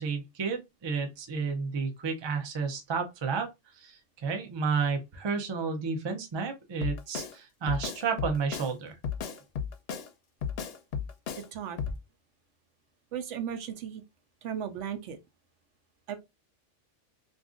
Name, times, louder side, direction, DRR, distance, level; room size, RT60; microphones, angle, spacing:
voice 1, 0.0-3.5 3.7-9.0, right 5 dB, 40° right, 0.4 m, -31 dB
Drum kit, 6.8-7.3 7.7-8.7 9.0-10.1 10.4-11.5 11.8-12.0, left 7 dB, 65° left, 0.7 m, -34 dB
voice 2, 13.1-14.0 14.4-15.2 16.1-16.2, right 8 dB, 75° right, 0.9 m, -35 dB
2.6 x 2.4 x 3.6 m
omnidirectional pair, 1.3 m